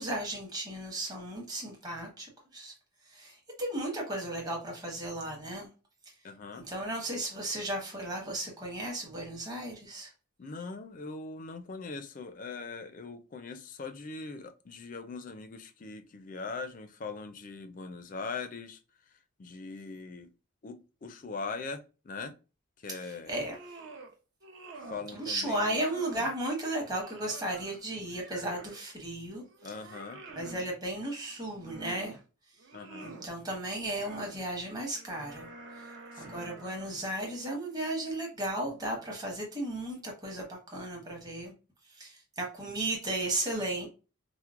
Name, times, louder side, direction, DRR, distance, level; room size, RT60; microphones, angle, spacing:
voice 1, 0.0-2.7 3.1-5.7 6.7-10.1 23.3-23.6 25.1-29.4 30.4-32.2 33.0-35.5 35.8-35.9 36.2-41.5 41.9-43.9, right 1 dB, 20° right, 0.9 m, -35 dB
voice 2, 6.2-6.7 10.4-18.8 19.1-20.3 20.6-22.3 22.8-23.4 24.7-25.8 29.6-30.2 32.7-33.1 36.1-36.5, left 4 dB, 40° left, 0.4 m, -41 dB
sound 1, 23.2-24.1 24.4-25.1 25.5-26.3 26.8-28.8 29.3-30.7 31.3-32.2 32.6-33.3 33.8-34.4 34.9-37.1, right 3 dB, 60° right, 0.7 m, -48 dB
4.4 x 2.0 x 2.4 m
head